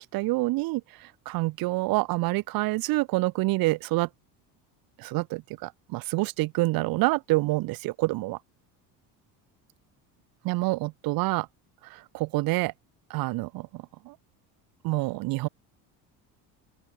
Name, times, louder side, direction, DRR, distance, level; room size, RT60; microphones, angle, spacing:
voice 1, 0.1-0.8 1.3-4.1 5.0-8.4 10.4-11.5 11.9-12.7 13.1-14.1 14.8-15.5, right 21 dB, 60° right, 0.9 m, -27 dB
open air
cardioid pair, 135°, 40 cm